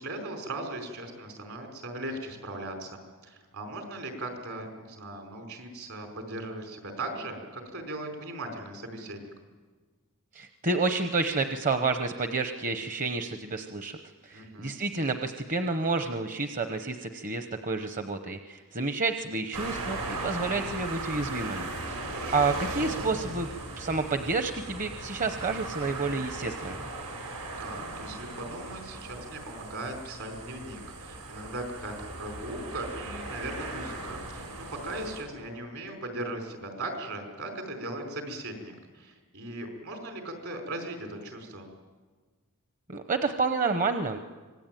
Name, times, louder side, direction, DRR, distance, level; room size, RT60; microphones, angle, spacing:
voice 1, 0.0-9.3 14.3-14.7 22.1-22.5 27.6-41.7, right 1 dB, 65° right, 4 dB, 5.0 m, -38 dB
voice 2, 10.3-14.0 14.2-23.5 23.8-26.8 42.9-44.2, right 3 dB, 35° right, 7 dB, 0.9 m, -30 dB
sound 1, 19.5-35.2, right 2 dB, 90° right, 5.5 m, -38 dB
25.5 x 19.0 x 9.2 m, 1.4 s
head